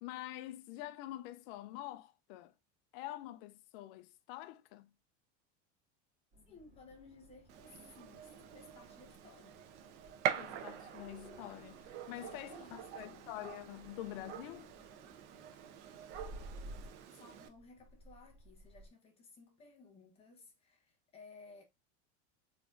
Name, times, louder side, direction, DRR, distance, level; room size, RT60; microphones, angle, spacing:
voice 1, 0.0-2.5 2.9-4.9 10.4-14.7, left 15 dB, 55° left, 0.5 m, -46 dB
sound 1, 6.3-18.9, right 1 dB, 30° right, 2.5 m, -56 dB
voice 2, 6.5-9.7 12.1-13.3 17.1-21.6, left 4 dB, 15° left, 0.9 m, -58 dB
Gunshot gunfire, 7.5-17.5, right 9 dB, 75° right, 0.9 m, -44 dB
4.2 x 3.9 x 2.4 m
cardioid pair, 175°, 35 cm